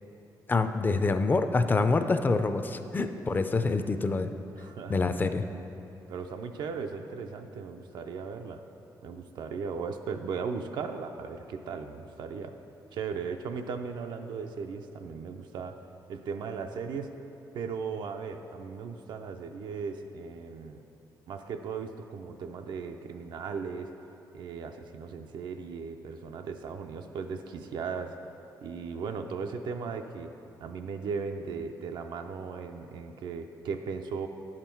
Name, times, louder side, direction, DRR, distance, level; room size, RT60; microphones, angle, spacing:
voice 1, 0.5-4.3 4.9-5.4, left 3 dB, 25° left, 8 dB, 0.4 m, -26 dB
voice 2, 4.5-5.0 6.1-8.6 9.0-12.5 12.9-15.7 16.1-17.1 17.5-20.8 21.3-23.9 24.3-28.1 28.6-30.3 30.6-34.3, right 5 dB, 80° right, 5 dB, 0.5 m, -37 dB
10.0 x 7.4 x 4.5 m, 2.9 s
cardioid pair, 125°, 8 cm